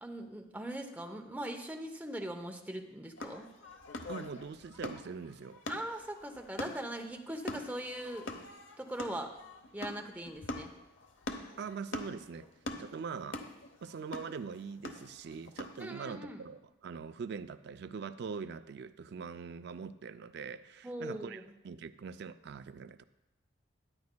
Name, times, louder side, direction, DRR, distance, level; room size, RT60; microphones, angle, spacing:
voice 1, 0.0-3.4 5.7-8.3 8.8-9.3 9.7-10.7 15.8-16.4 20.8-21.4, right 1 dB, 10° right, 3 dB, 0.8 m, -40 dB
sound 1, 3.2-15.9, left 2 dB, 90° left, 0.9 m, -44 dB
voice 2, 4.1-5.6 11.6-12.5 12.8-13.4 13.8-23.0, right 5 dB, 60° right, 13 dB, 0.4 m, -43 dB
14.5 x 9.4 x 2.3 m, 0.96 s
head